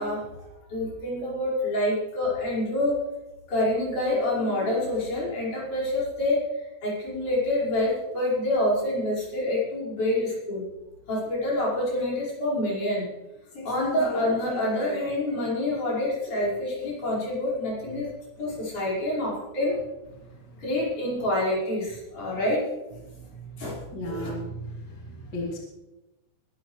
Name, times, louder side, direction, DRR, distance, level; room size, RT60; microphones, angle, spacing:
voice 1, 0.0-3.0 3.5-6.4 6.8-10.6 11.1-13.1 13.5-18.1 18.4-19.8 20.6-22.7 23.6-23.8 24.0-24.3, left 1 dB, 55° left, -6 dB, 6.9 m, -27 dB
voice 2, 23.9-25.6, equal, 30° left, -3 dB, 3.0 m, -35 dB
21.5 x 12.5 x 3.3 m, 1.0 s
omnidirectional pair, 4.2 m